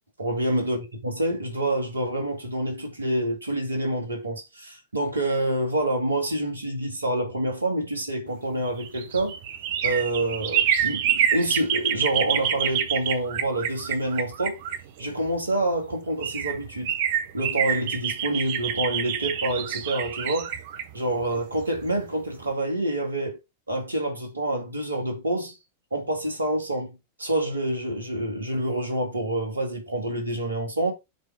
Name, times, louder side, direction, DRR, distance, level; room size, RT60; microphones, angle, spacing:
voice 1, 0.2-9.4 9.8-14.6 15.0-16.9 17.3-20.5 20.9-23.4 23.7-25.6 25.9-30.9, right 1 dB, 80° right, 2.4 m, -27 dB
sound 1, 8.5-15.3 15.9-16.0 16.2-22.0 22.3-22.4, right 9 dB, 55° right, 1.1 m, -27 dB
7.7 x 3.7 x 4.9 m
figure-of-eight pair, 95°, 0 cm